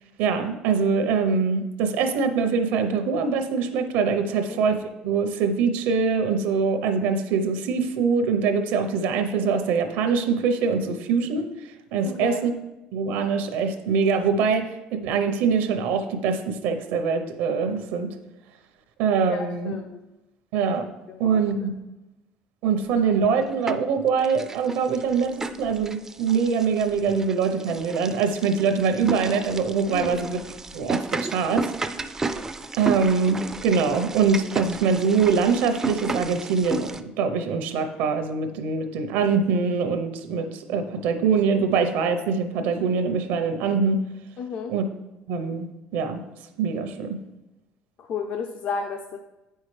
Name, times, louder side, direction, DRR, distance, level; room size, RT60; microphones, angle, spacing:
voice 1, 0.2-12.5 12.9-18.1 19.0-19.7 20.5-20.9 21.2-21.7 22.6-30.4 30.7-31.7 32.8-44.0 44.7-44.9 45.3-45.7 45.9-46.2 46.6-47.2, right 5 dB, 85° right, 7 dB, 0.8 m, -23 dB
voice 2, 12.0-12.5 19.3-20.0 21.1-21.4 29.9-30.2 44.4-44.7 48.0-49.2, left 5 dB, 50° left, 4 dB, 0.5 m, -32 dB
sound 1, 23.1-23.9 24.2-37.0, right 3 dB, 15° right, 0.3 m, -33 dB
8.3 x 5.6 x 3.2 m, 1.0 s
cardioid pair, 125°, 3 cm